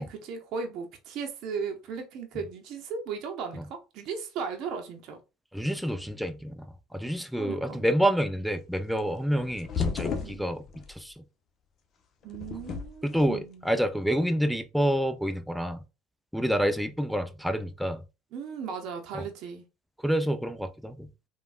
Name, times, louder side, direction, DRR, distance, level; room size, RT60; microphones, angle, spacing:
voice 1, 0.0-5.2 7.4-7.8 10.2-10.4 12.2-13.6 18.3-19.6, right 5 dB, 60° right, 0.6 m, -36 dB
voice 2, 5.5-6.6 6.9-11.2 13.0-15.8 16.3-18.0 19.1-19.2 20.0-21.1, equal, ahead, 0.4 m, -28 dB
sound 1, 9.0-10.9 12.2-13.3, left 5 dB, 45° left, 0.6 m, -33 dB
3.2 x 2.2 x 2.4 m
hypercardioid pair, 80°, 0 cm